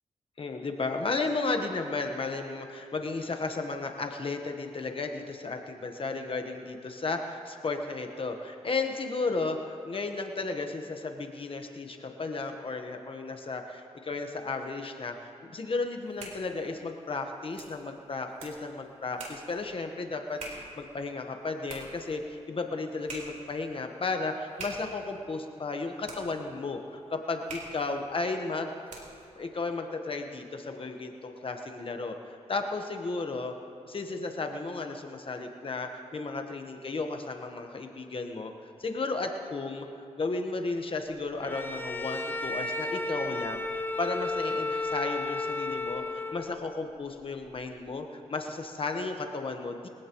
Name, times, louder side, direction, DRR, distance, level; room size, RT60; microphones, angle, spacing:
voice 1, 0.4-28.7 29.4-33.5 33.8-38.5 38.8-49.9, left 3 dB, 45° left, 4 dB, 1.1 m, -34 dB
sound 1, 15.9-29.3, right 2 dB, 80° right, 4.0 m, -47 dB
Bowed string instrument, 41.4-46.7, left 2 dB, 15° left, 1.0 m, -33 dB
22.5 x 16.0 x 3.0 m, 2.4 s
cardioid pair, 85°, 13 cm